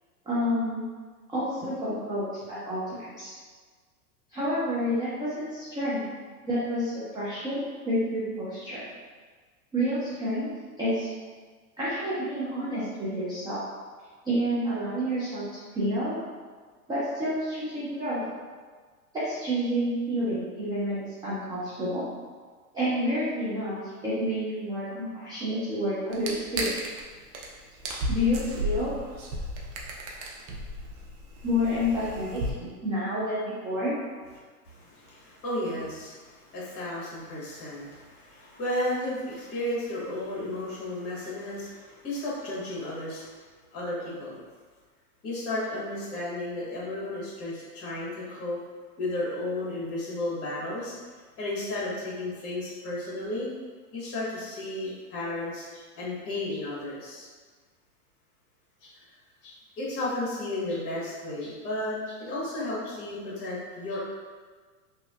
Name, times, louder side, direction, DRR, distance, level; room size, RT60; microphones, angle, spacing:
voice 1, 0.3-0.9 1.3-3.3 4.3-6.0 6.4-8.8 9.7-10.5 10.8-11.1 11.8-13.6 14.2-15.4 15.7-16.2 16.9-18.2 19.1-22.1 22.7-26.7 28.1-28.9 31.4-34.0, equal, 10° right, -11 dB, 0.4 m, -29 dB
sound 1, 26.1-27.0 27.3-27.5 27.8-32.5, right 1 dB, 65° right, 0.7 m, -34 dB
voice 2, 34.6-43.4 43.7-44.4 45.2-48.6 49.0-50.9 51.4-53.5 53.9-57.3 58.8-58.9 59.4-64.0, left 1 dB, 30° left, -7 dB, 1.4 m, -33 dB
3.0 x 2.7 x 2.4 m, 1.5 s
hypercardioid pair, 110°, 47 cm